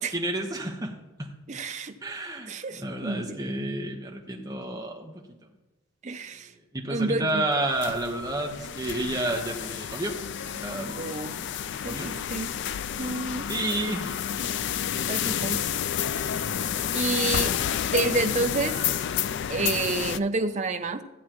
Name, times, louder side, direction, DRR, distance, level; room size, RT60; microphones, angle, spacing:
voice 1, 0.1-0.9 1.2-1.3 2.0-5.1 6.7-10.1 10.5-11.5 11.8-12.1 13.5-14.2, right 1 dB, 15° right, 1 dB, 1.0 m, -30 dB
voice 2, 1.5-2.0 2.5-3.5 6.0-6.5 6.9-7.4 11.0-11.3 11.8-12.5 13.0-13.5 15.1-15.6 16.9-17.6 17.9-18.8 19.5-21.0, right 3 dB, 30° right, 8 dB, 0.5 m, -29 dB
sound 1, 7.6-20.2, left 9 dB, 50° left, 0.3 m, -30 dB
14.5 x 8.3 x 3.0 m, 1.1 s
head